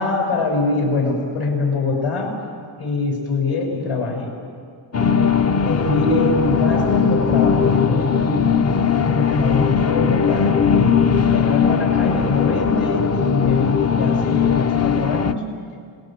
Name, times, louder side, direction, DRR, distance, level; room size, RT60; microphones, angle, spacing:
voice 1, 0.0-2.3 2.8-4.3 5.6-8.5 9.0-15.4, left 3 dB, 80° left, 1 dB, 6.3 m, -23 dB
sound 1, 4.9-15.3, left 6 dB, 30° left, 0.6 m, -19 dB
28.0 x 20.5 x 7.5 m, 2.1 s
wide cardioid pair, 140°, 49 cm